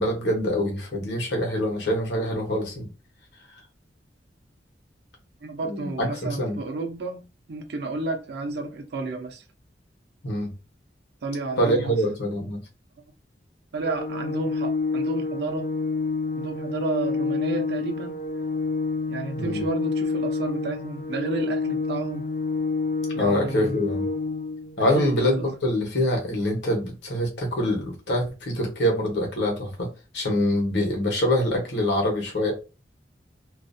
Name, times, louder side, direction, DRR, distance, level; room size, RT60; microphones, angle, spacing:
voice 1, 0.0-2.9 5.6-6.6 10.2-10.5 11.6-12.6 19.4-19.6 23.2-24.1 24.8-29.9 30.1-32.5, left 1 dB, 85° left, 0.9 m, -25 dB
voice 2, 5.4-7.2 7.5-9.4 11.2-12.0 13.7-15.6 16.4-18.2 19.1-22.3 23.1-23.8 24.9-25.5, right 3 dB, 65° right, 0.5 m, -31 dB
Organ, 13.8-24.8, left 3 dB, 50° left, 0.4 m, -28 dB
2.4 x 2.0 x 2.5 m
head